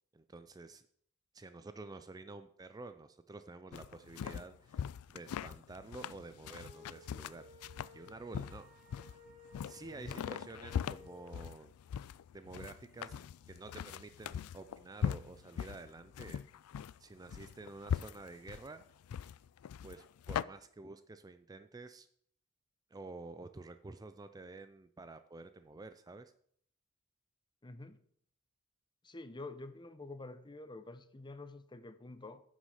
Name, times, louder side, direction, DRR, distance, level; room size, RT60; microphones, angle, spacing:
voice 1, 0.1-0.9 1.3-7.5 7.9-8.7 9.6-11.7 12.3-16.4 17.0-18.8 19.8-22.1 22.9-26.3, right 3 dB, 20° right, 0.4 m, -50 dB
sound 1, 3.7-20.4, left 8 dB, 90° left, 0.3 m, -41 dB
sound 2, 6.5-11.3, left 2 dB, 40° right, 2.1 m, -58 dB
voice 2, 27.6-28.0 29.0-32.4, left 2 dB, 20° left, 0.7 m, -48 dB
9.6 x 6.3 x 6.5 m
head